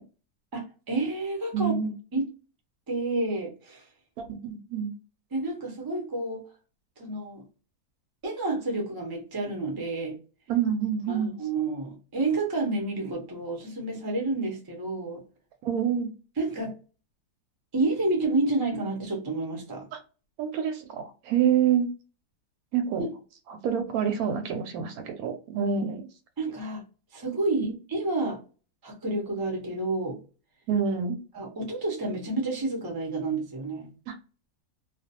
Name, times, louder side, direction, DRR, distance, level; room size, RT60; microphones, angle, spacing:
voice 1, 0.5-1.7 2.1-2.3 2.9-3.8 5.3-6.4 7.0-7.4 8.2-10.2 11.1-15.2 16.4-16.7 17.7-19.9 26.4-26.8 27.1-28.4 28.8-30.2 31.3-33.9, right 2 dB, 30° right, 0 dB, 0.4 m, -29 dB
voice 2, 1.5-1.9 4.2-4.9 10.5-11.3 15.6-16.1 19.9-20.0 20.4-21.9 22.7-23.1 23.5-26.1 30.7-31.2 34.1-34.2, right 8 dB, 75° right, 7 dB, 1.0 m, -27 dB
2.4 x 2.2 x 2.7 m, 0.34 s
omnidirectional pair, 1.7 m